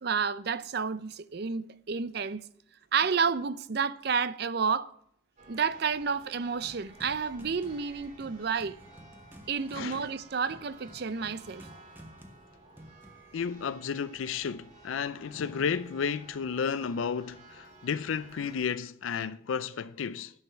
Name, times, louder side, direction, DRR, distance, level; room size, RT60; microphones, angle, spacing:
voice 1, 0.0-2.4 2.9-4.9 5.5-8.8 9.5-11.7, right 6 dB, 50° right, 0.5 m, -30 dB
Church bell, 5.4-18.6, right 2 dB, 35° right, 2.4 m, -54 dB
sound 1, 6.6-13.3, equal, 10° right, 0.8 m, -53 dB
voice 2, 9.7-10.1 13.3-20.3, left 6 dB, 80° left, 0.4 m, -32 dB
9.8 x 6.5 x 7.8 m
head